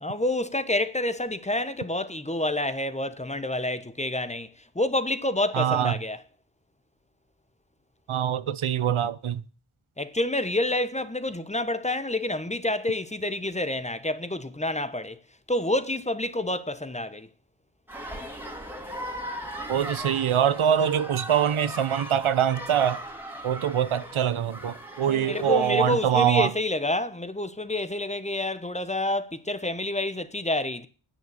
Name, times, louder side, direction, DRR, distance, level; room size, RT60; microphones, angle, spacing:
voice 1, 0.0-4.5 4.7-6.2 10.0-15.2 15.5-17.3 25.1-30.9, left 1 dB, 15° left, 1.1 m, -28 dB
voice 2, 5.5-5.9 8.1-9.4 19.7-23.0 23.4-26.5, right 9 dB, 85° right, 0.9 m, -24 dB
sound 1, 17.9-26.2, equal, 5° right, 2.7 m, -38 dB
10.0 x 9.5 x 8.7 m
wide cardioid pair, 100°, 47 cm